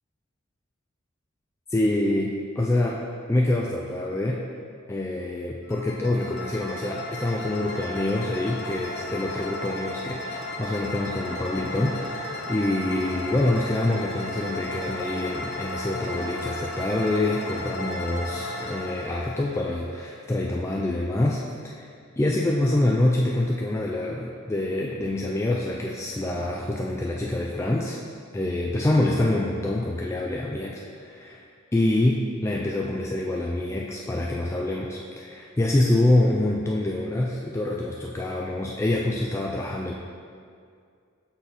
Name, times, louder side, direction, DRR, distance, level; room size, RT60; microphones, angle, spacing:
voice 1, 1.7-3.0 3.3-4.4 4.9-21.9 22.2-28.0 28.3-31.4 31.7-39.9, left 1 dB, 15° left, -2 dB, 0.3 m, -26 dB
sound 1, 5.7-20.5, left 2 dB, 55° left, 0.7 m, -34 dB
5.9 x 5.8 x 4.0 m, 2.2 s
head